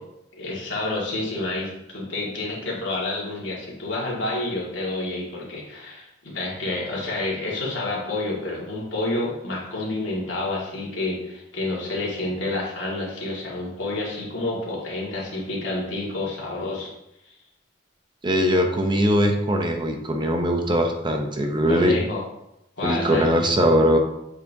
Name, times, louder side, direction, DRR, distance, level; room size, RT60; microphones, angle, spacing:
voice 1, 0.3-16.9 21.7-22.2 22.8-23.2, left 2 dB, 90° left, -4 dB, 2.0 m, -29 dB
voice 2, 18.2-21.9 22.8-24.0, equal, 25° right, 3 dB, 0.7 m, -21 dB
7.8 x 4.5 x 2.7 m, 0.84 s
head